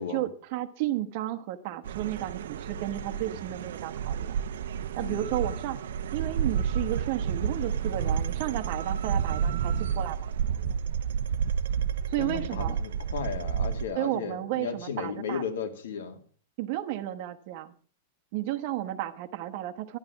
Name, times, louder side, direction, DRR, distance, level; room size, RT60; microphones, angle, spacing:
voice 1, 0.0-4.3 5.0-5.8 6.1-10.3 12.1-12.7 13.9-15.4 16.6-17.7 18.3-20.0, right 14 dB, 40° right, 9 dB, 1.1 m, -33 dB
sound 1, 1.8-13.9, right 7 dB, 85° right, 0.8 m, -30 dB
voice 2, 12.2-16.2, left 6 dB, 85° left, 6 dB, 2.4 m, -35 dB
11.5 x 11.0 x 5.9 m, 0.43 s
supercardioid pair, 175°, 0 cm